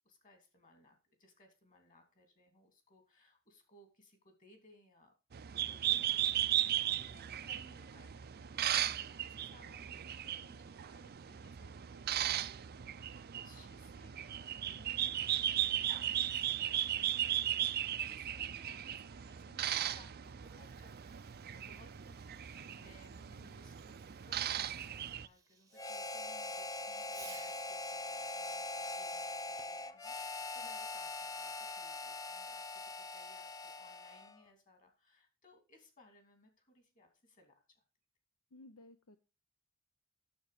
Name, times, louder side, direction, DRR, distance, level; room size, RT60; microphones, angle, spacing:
voice 1, 0.0-5.1 5.6-21.3 21.5-37.8, left 1 dB, 35° left, 6 dB, 2.9 m, -64 dB
sound 1, 5.3-25.3, right 11 dB, 45° right, 0.5 m, -37 dB
Fireworks, 20.2-27.8 29.6-30.6, right 6 dB, 15° right, 0.8 m, -61 dB
Harmonica, 25.7-34.4, left 2 dB, 15° left, 0.5 m, -42 dB
voice 2, 38.5-39.2, left 2 dB, 70° left, 9 dB, 0.7 m, -56 dB
9.3 x 7.3 x 5.0 m, 0.32 s
head